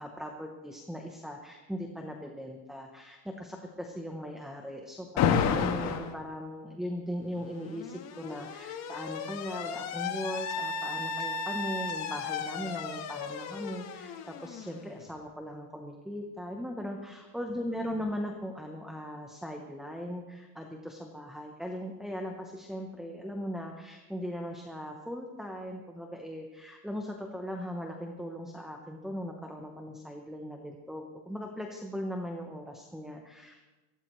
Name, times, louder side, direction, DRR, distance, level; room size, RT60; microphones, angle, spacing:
voice 1, 0.0-33.6, equal, ahead, 2 dB, 0.7 m, -39 dB
Alarm, 5.2-6.1 7.4-15.1, left 6 dB, 35° left, 1.3 m, -33 dB
23.5 x 16.5 x 3.1 m, 1.2 s
cardioid pair, 170°, 47 cm